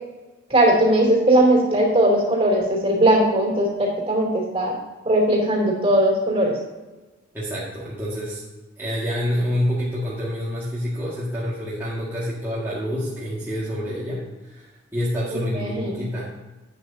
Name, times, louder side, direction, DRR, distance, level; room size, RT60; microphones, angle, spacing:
voice 1, 0.5-4.7 5.0-6.6 15.3-16.0, right 1 dB, 30° right, -3 dB, 3.0 m, -19 dB
voice 2, 7.3-8.4 8.8-16.2, equal, 10° right, -9 dB, 2.0 m, -27 dB
11.5 x 9.5 x 2.8 m, 1.2 s
head